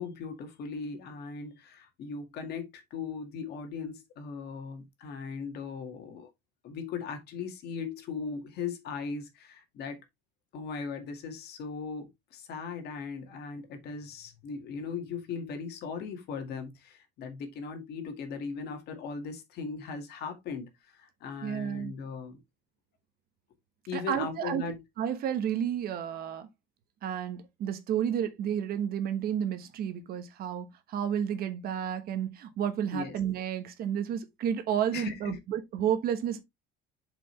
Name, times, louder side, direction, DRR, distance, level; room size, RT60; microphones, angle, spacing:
voice 1, 0.0-6.3 6.6-10.0 10.5-22.4 23.9-24.8 32.9-33.2 34.9-35.4, left 5 dB, 50° left, 1.9 m, -38 dB
voice 2, 21.4-21.9 23.9-24.6 25.0-26.5 27.0-36.4, right 9 dB, 45° right, 1.2 m, -31 dB
7.4 x 5.1 x 3.2 m
cardioid pair, 165°, 21 cm